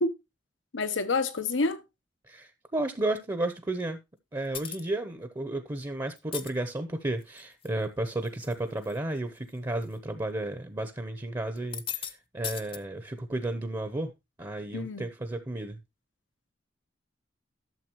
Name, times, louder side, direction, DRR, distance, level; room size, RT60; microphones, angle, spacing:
voice 1, 0.7-1.8 14.7-15.1, left 3 dB, 90° left, 1.0 m, -28 dB
voice 2, 2.3-4.0 4.3-14.1 14.4-15.8, right 2 dB, 20° right, 0.8 m, -33 dB
sound 1, 4.5-4.9 6.2-6.5 7.2-7.7 8.1-8.5 8.8-9.0 9.8-9.9 11.6-12.1 12.4-12.8, left 8 dB, 30° left, 0.8 m, -37 dB
12.5 x 6.9 x 3.0 m
head